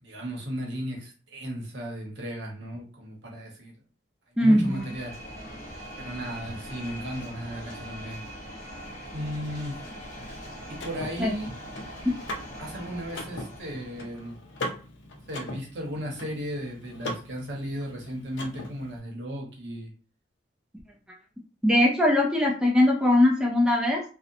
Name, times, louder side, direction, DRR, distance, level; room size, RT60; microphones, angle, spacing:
voice 1, 0.0-3.7 4.4-5.1 6.0-8.5 9.1-9.8 10.7-11.5 12.6-14.3 15.3-19.9, equal, 65° right, -1 dB, 0.8 m, -35 dB
sound 1, 4.4-14.3, equal, 40° left, 0.7 m, -42 dB
voice 2, 4.4-4.8 11.2-11.3 21.6-24.0, left 1 dB, 5° right, -1 dB, 0.4 m, -21 dB
Car / Mechanisms, 10.1-19.0, left 1 dB, 75° left, 0.5 m, -40 dB
2.8 x 2.0 x 2.5 m, 0.37 s
head